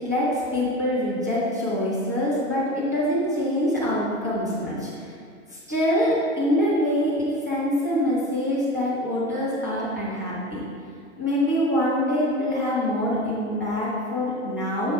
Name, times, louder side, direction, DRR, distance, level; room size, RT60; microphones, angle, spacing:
voice 1, 0.0-5.1 5.5-10.6 11.2-14.9, left 1 dB, 15° right, -8 dB, 0.3 m, -25 dB
6.9 x 3.2 x 4.5 m, 2.2 s
hypercardioid pair, 165°, 39 cm